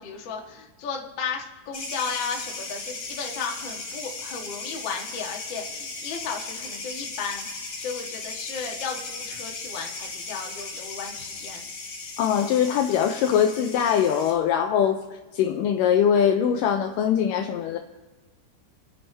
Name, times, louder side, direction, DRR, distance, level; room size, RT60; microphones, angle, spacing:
voice 1, 0.0-11.6, left 5 dB, 55° left, 0 dB, 1.3 m, -34 dB
sound 1, 1.7-14.3, left 3 dB, 40° left, 2.4 m, -37 dB
voice 2, 12.2-15.0 15.3-17.8, left 8 dB, 85° left, 6 dB, 1.9 m, -22 dB
27.0 x 9.7 x 3.3 m, 1.2 s
omnidirectional pair, 4.4 m